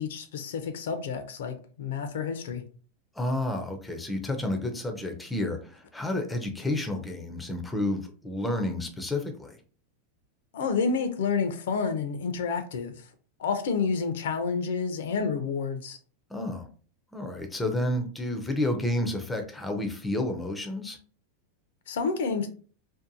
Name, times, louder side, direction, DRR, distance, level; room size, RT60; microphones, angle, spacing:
voice 1, 0.0-2.6 10.5-13.0 13.4-16.0 21.9-22.5, left 5 dB, 80° left, 0.5 m, -29 dB
voice 2, 3.2-9.6 16.3-16.7 17.1-21.0, left 1 dB, 5° left, 0.4 m, -30 dB
2.6 x 2.1 x 2.6 m
supercardioid pair, 145°, 0 cm